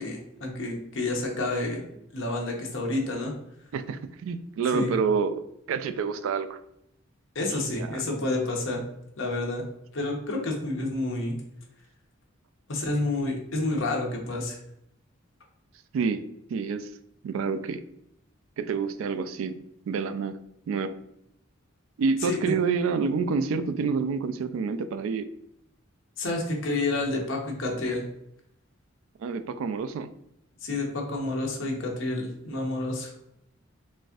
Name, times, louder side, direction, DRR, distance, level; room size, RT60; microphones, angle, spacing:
voice 1, 0.0-1.8 2.1-3.3 4.7-4.9 7.3-8.8 9.2-9.6 9.9-11.3 12.7-14.6 22.2-22.5 26.2-28.0 30.6-33.1, left 2 dB, 65° left, 0 dB, 0.8 m, -29 dB
voice 2, 3.7-6.6 7.5-8.0 15.9-16.2 16.5-16.9 17.2-17.8 18.6-19.6 19.9-20.4 20.7-20.9 22.0-25.3 29.2-30.1, right 5 dB, 75° right, 12 dB, 0.3 m, -28 dB
4.1 x 2.5 x 2.4 m, 0.78 s
head